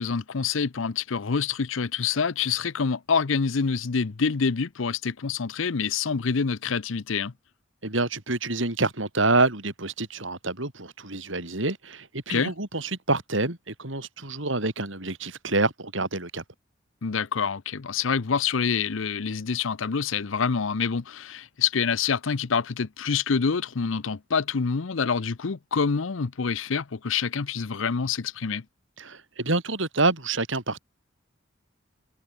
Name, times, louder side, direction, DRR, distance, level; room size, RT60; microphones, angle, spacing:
voice 1, 0.0-7.3 12.3-12.5 17.0-28.6, left 5 dB, 80° left, 0.7 m, -26 dB
voice 2, 7.8-16.4 29.0-30.8, right 2 dB, 75° right, 4.4 m, -27 dB
head